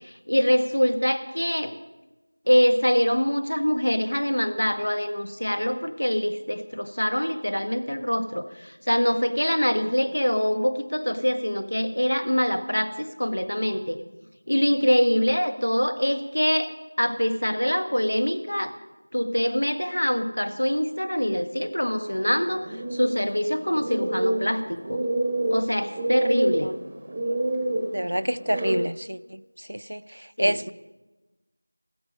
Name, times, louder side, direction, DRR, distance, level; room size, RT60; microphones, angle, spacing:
voice 1, 0.0-1.7 2.5-14.0 14.5-16.7 17.0-18.7 19.1-25.0 25.5-26.7 30.4-30.6, equal, 75° left, 1.4 m, -24 dB
sound 1, 22.4-28.8, right 1 dB, 10° right, 0.9 m, -28 dB
voice 2, 27.9-29.4 29.7-30.0 30.4-30.7, equal, 70° right, 0.5 m, -27 dB
16.0 x 14.0 x 5.4 m
figure-of-eight pair, 175°, 0 cm